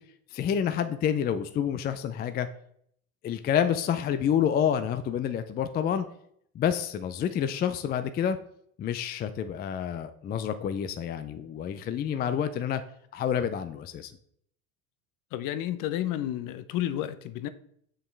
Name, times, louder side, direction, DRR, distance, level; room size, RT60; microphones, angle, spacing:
voice 1, 0.3-2.5 3.2-6.1 6.5-8.4 8.8-12.8 13.1-14.1, left 8 dB, 25° left, 0.4 m, -28 dB
voice 2, 15.3-17.5, left 12 dB, 50° left, 0.7 m, -31 dB
7.0 x 5.5 x 3.3 m
supercardioid pair, 100°, 40 cm